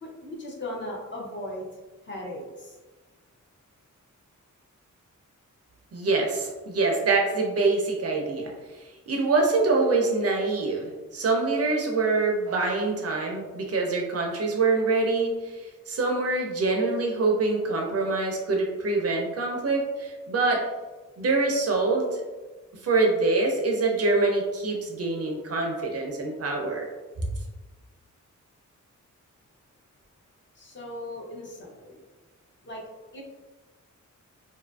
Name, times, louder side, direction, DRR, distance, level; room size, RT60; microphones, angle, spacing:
voice 1, 0.0-1.7 2.0-2.8 30.5-32.0 32.6-33.2, left 1 dB, 35° left, -2 dB, 0.5 m, -38 dB
voice 2, 5.9-20.6 21.2-22.2 22.8-26.9 27.2-27.3, right 3 dB, 50° right, 1 dB, 0.4 m, -25 dB
2.6 x 2.4 x 2.2 m, 1.2 s
wide cardioid pair, 170°, 31 cm